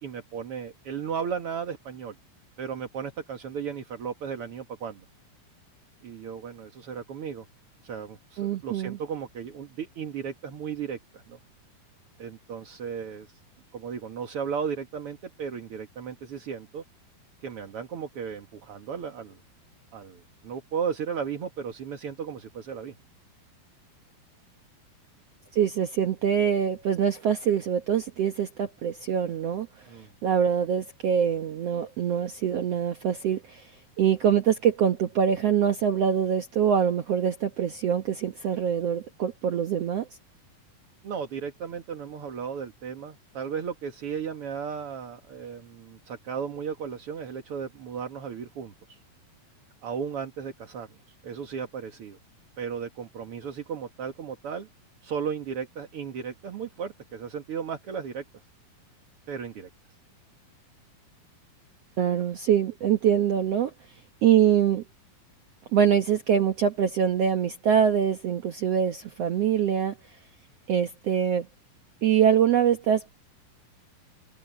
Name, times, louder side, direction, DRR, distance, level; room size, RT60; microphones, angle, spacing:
voice 1, 0.0-2.2 2.6-5.1 6.0-7.5 7.8-11.4 12.2-13.4 13.7-16.8 17.4-19.4 19.9-23.0 29.9-30.1 41.0-49.0 49.8-51.0 51.2-52.2 52.6-54.7 55.0-58.2 59.3-59.7, right 7 dB, 50° right, 2.0 m, -35 dB
voice 2, 8.4-9.0 25.5-29.9 30.2-33.7 34.0-40.1 62.0-63.7 64.2-64.8 65.7-70.0 70.7-71.5 72.0-73.1, right 8 dB, 75° right, 1.4 m, -24 dB
open air
omnidirectional pair, 4.3 m